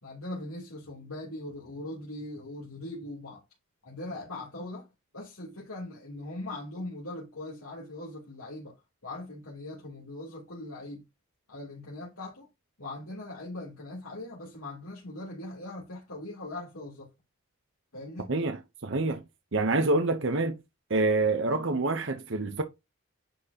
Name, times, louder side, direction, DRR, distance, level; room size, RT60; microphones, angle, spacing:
voice 1, 0.0-3.4 3.8-4.9 5.1-8.8 9.0-11.0 11.5-12.5 12.8-17.1 17.9-18.3, left 2 dB, 90° left, 3.1 m, -40 dB
voice 2, 18.3-19.2 19.5-20.6 20.9-22.6, right 2 dB, 60° right, 0.9 m, -27 dB
10.0 x 4.4 x 2.9 m
head